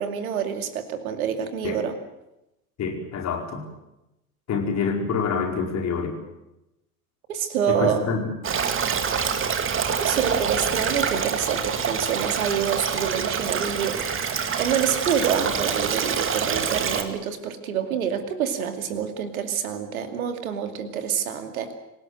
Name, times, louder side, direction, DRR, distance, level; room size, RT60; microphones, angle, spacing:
voice 1, 0.0-2.0 7.3-8.1 10.0-14.1 14.6-21.7, right 8 dB, 65° right, 7 dB, 2.6 m, -27 dB
voice 2, 2.8-3.7 4.5-6.2 7.7-8.2, left 5 dB, 35° left, 2 dB, 4.9 m, -26 dB
Stream, 8.4-17.0, right 6 dB, 25° right, 2.2 m, -26 dB
26.5 x 18.0 x 7.8 m, 0.93 s
figure-of-eight pair, 70°, 45 cm